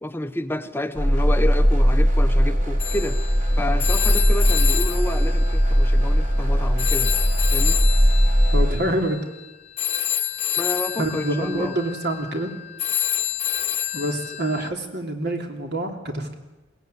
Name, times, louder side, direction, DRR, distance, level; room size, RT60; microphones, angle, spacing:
voice 1, 0.0-3.2 3.5-7.1 7.5-7.8 10.6-11.8, left 1 dB, 10° left, 9 dB, 0.8 m, -29 dB
sound 1, 1.0-8.8, equal, 45° right, 4.3 m, -19 dB
Telephone, 2.8-6.4 6.8-14.7, left 11 dB, 35° left, 1.0 m, -28 dB
voice 2, 8.5-9.2 11.0-12.5 13.9-16.3, right 1 dB, 60° right, 4 dB, 3.1 m, -26 dB
22.0 x 18.0 x 9.5 m, 1.1 s
head